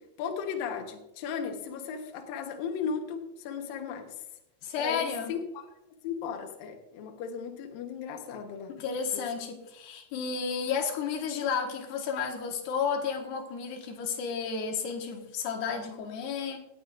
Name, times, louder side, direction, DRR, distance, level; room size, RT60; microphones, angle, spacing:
voice 1, 0.0-4.1 4.8-5.7 6.0-8.7, left 6 dB, 80° left, 2.0 m, -36 dB
voice 2, 4.6-5.3 8.8-16.6, left 6 dB, 65° left, 2.9 m, -32 dB
18.0 x 11.5 x 2.5 m
omnidirectional pair, 5.9 m